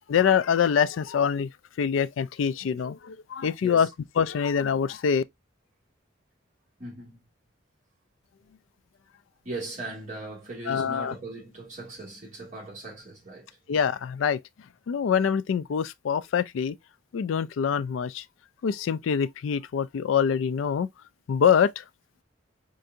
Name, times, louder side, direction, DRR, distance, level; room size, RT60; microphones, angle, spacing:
voice 1, 0.1-1.5 1.8-3.9 4.2-5.2 10.7-11.1 13.7-14.4 14.9-16.8 17.1-18.2 18.6-20.9 21.3-21.8, left 7 dB, 90° left, 0.3 m, -25 dB
voice 2, 6.8-7.2 9.4-13.5, right 2 dB, 40° right, 2.1 m, -39 dB
4.6 x 2.5 x 2.6 m
head